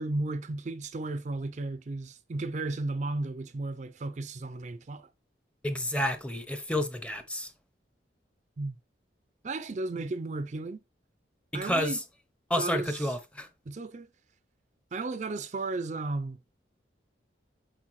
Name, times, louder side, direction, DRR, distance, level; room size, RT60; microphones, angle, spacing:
voice 1, 0.0-5.1 8.6-8.8 9.4-10.8 11.5-12.0 12.5-13.2 13.7-14.1 14.9-16.4, right 2 dB, 40° right, 0.4 m, -34 dB
voice 2, 5.6-7.5 11.5-12.0 12.5-13.5, left 1 dB, 5° left, 0.7 m, -30 dB
7.5 x 4.7 x 3.1 m
head